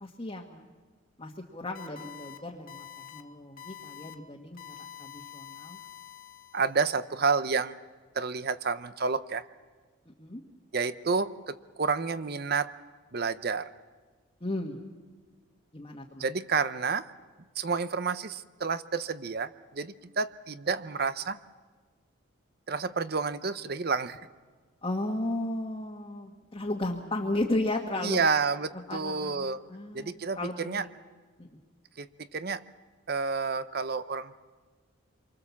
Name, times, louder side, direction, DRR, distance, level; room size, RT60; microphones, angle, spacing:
voice 1, 0.0-0.7 1.2-2.8 3.1-5.8 10.2-10.4 14.4-14.8 15.7-16.2 24.8-28.3 28.9-30.9 31.4-31.5, left 1 dB, 25° left, -2 dB, 1.6 m, -34 dB
sound 1, 1.7-2.4 2.7-3.2 3.6-4.1 4.6-6.9, left 10 dB, 40° left, 1.5 m, -46 dB
voice 2, 6.5-7.8 8.1-9.4 10.7-12.7 13.1-13.7 16.2-17.0 17.6-21.4 22.7-24.2 28.0-29.6 29.9-30.8 32.0-32.6 33.1-34.4, right 5 dB, 45° right, 13 dB, 0.7 m, -30 dB
26.5 x 24.0 x 7.2 m, 1.4 s
head